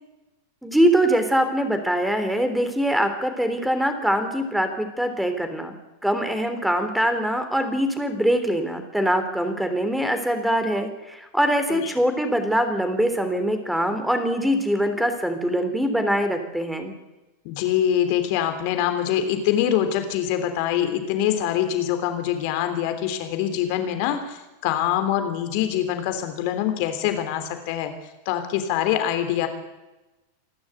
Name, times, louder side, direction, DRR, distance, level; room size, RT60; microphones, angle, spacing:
voice 1, 0.6-5.7 6.0-17.0, equal, ahead, 8 dB, 3.4 m, -23 dB
voice 2, 17.4-27.9 28.2-29.5, left 10 dB, 45° left, 8 dB, 3.2 m, -24 dB
27.5 x 12.0 x 8.1 m, 1.0 s
figure-of-eight pair, 90°, 0 cm